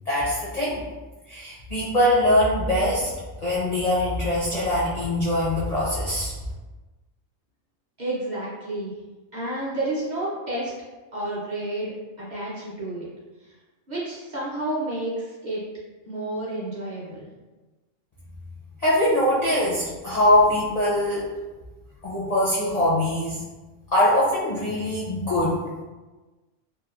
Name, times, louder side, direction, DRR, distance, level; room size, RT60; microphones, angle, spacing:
voice 1, 0.1-0.8 1.3-3.1 3.4-6.3 18.8-21.3 22.0-23.4 23.9-25.6, left 1 dB, 50° left, -8 dB, 0.4 m, -22 dB
voice 2, 8.0-8.9 9.3-10.7 11.1-13.1 13.9-15.6 16.1-17.3, right 1 dB, 45° right, -9 dB, 0.7 m, -30 dB
2.9 x 2.2 x 2.4 m, 1.2 s
omnidirectional pair, 1.3 m